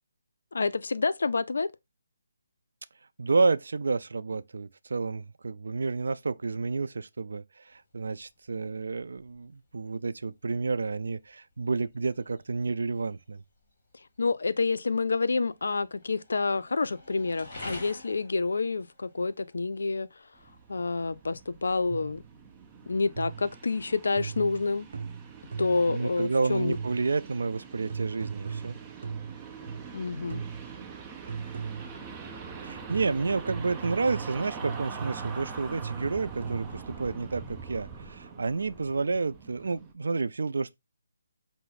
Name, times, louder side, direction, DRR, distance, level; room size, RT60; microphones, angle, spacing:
voice 1, 0.5-1.7 14.2-20.1 20.7-22.2 22.9-24.9 25.6-26.8 29.9-30.4, left 3 dB, 75° left, 0.4 m, -28 dB
voice 2, 3.2-7.4 7.7-13.4 25.9-28.8 32.6-40.8, right 4 dB, 70° right, 0.4 m, -30 dB
sound 1, 7.7-23.2, left 2 dB, 35° left, 1.8 m, -51 dB
sound 2, 20.3-39.9, right 5 dB, 15° right, 0.7 m, -44 dB
sound 3, 21.9-22.3 23.2-23.6 24.2-26.0 26.7-27.2 27.9-30.0 30.3-30.8 31.3-32.1 32.9-36.9, right 6 dB, 50° right, 0.8 m, -38 dB
5.5 x 2.0 x 4.0 m
hypercardioid pair, 165°, 0 cm